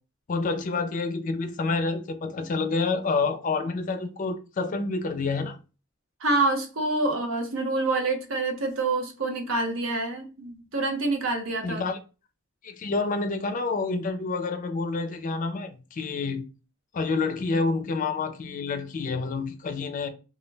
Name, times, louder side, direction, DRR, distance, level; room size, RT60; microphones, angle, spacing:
voice 1, 0.3-5.6 11.6-12.0 12.6-16.4 16.9-20.1, left 3 dB, 40° left, 0.4 m, -28 dB
voice 2, 6.2-11.8, right 2 dB, 85° right, 0.7 m, -27 dB
2.2 x 2.1 x 3.1 m
head